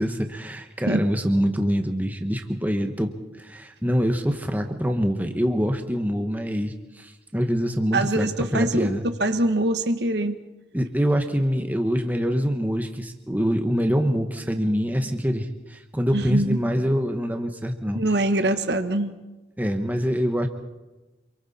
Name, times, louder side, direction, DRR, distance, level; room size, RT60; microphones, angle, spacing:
voice 1, 0.0-8.3 8.5-9.0 10.7-18.0 19.6-20.5, equal, 10° right, 5 dB, 1.3 m, -25 dB
voice 2, 7.9-8.9 9.2-10.4 16.1-16.6 17.9-19.1, right 1 dB, 70° right, 8 dB, 1.3 m, -23 dB
27.5 x 24.0 x 4.3 m, 1.1 s
head